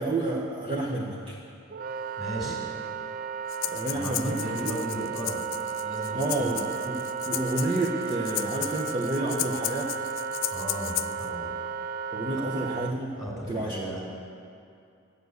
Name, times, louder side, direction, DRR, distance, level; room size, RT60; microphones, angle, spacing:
voice 1, 0.0-1.4 3.7-4.8 6.1-9.9 12.1-13.2 13.5-13.9, right 2 dB, 20° right, -3 dB, 0.9 m, -30 dB
Wind instrument woodwind instrument, 1.7-12.9, right 6 dB, 40° right, 0.4 m, -34 dB
voice 2, 2.2-2.6 3.9-5.4 5.8-6.6 10.5-11.5 12.3-12.5 13.2-14.0, equal, ahead, -3 dB, 2.4 m, -36 dB
Breathing, 3.5-11.3, left 17 dB, 55° left, 0.3 m, -35 dB
11.5 x 8.2 x 7.9 m, 2.4 s
head